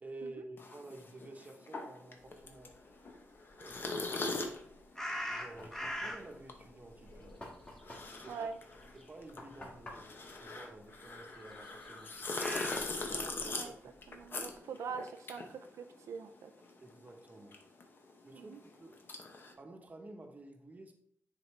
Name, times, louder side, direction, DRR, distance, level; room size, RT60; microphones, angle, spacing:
voice 1, 0.0-2.8 3.6-4.5 5.2-7.4 8.2-8.5 8.9-12.6 13.1-13.7 16.8-17.6 18.2-19.0 19.6-20.9, right 2 dB, 30° right, 4 dB, 1.0 m, -51 dB
sound 1, 0.6-16.4 16.6-19.5, left 3 dB, 45° left, 0.9 m, -42 dB
Knock, 5.0-11.5, left 1 dB, 25° left, 2.2 m, -53 dB
sound 2, 5.0-6.4 6.8-8.5 8.8-9.0 9.8-9.9 11.7-13.5, equal, 10° left, 0.9 m, -40 dB
voice 2, 8.3-8.6 13.5-13.7 14.1-16.5 18.3-18.6, right 5 dB, 90° right, 7 dB, 0.4 m, -43 dB
9.6 x 4.1 x 3.3 m, 0.68 s
cardioid pair, 105°, 5 cm